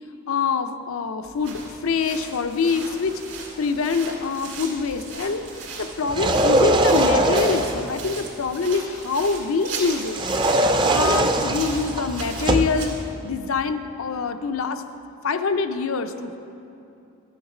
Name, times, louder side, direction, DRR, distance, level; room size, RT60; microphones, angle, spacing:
voice 1, 0.3-3.2 3.6-5.5 5.8-10.2 10.5-10.6 10.9-14.8 15.2-16.4, left 5 dB, 80° left, 9 dB, 0.5 m, -25 dB
sound 1, 1.2-13.1, right 4 dB, 70° right, 2.0 m, -38 dB
sound 2, 6.0-7.9 10.1-12.8, right 1 dB, 20° right, 0.4 m, -21 dB
11.5 x 7.2 x 4.9 m, 2.7 s
head